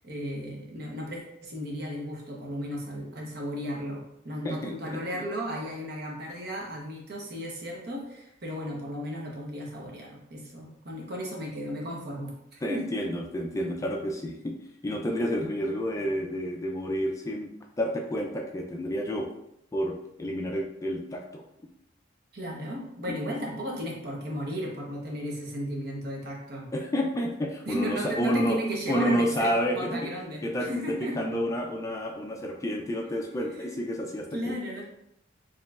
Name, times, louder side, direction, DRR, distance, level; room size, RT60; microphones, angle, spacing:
voice 1, 0.0-12.9 22.3-26.7 27.7-31.1 33.6-33.7 34.3-34.8, equal, 55° right, -1 dB, 0.9 m, -35 dB
voice 2, 12.6-14.6 14.8-17.5 17.8-19.3 19.7-21.4 23.1-23.4 26.7-28.6 28.9-30.1 30.4-30.7 31.0-34.5, equal, 15° left, 1 dB, 0.3 m, -30 dB
4.7 x 2.9 x 2.3 m, 0.79 s
head